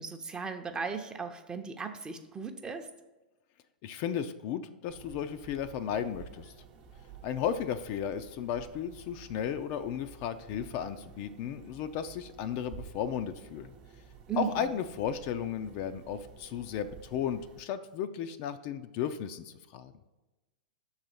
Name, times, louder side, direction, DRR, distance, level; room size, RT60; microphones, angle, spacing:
voice 1, 0.0-2.9 14.3-14.7, right 6 dB, 15° right, 6 dB, 0.7 m, -36 dB
voice 2, 3.8-6.5 7.2-13.8 14.4-19.9, left 8 dB, 45° left, 9 dB, 0.4 m, -34 dB
sound 1, 4.9-17.6, right 6 dB, 45° right, 0.9 m, -52 dB
6.1 x 4.0 x 5.8 m, 1.1 s
hypercardioid pair, 105°, 5 cm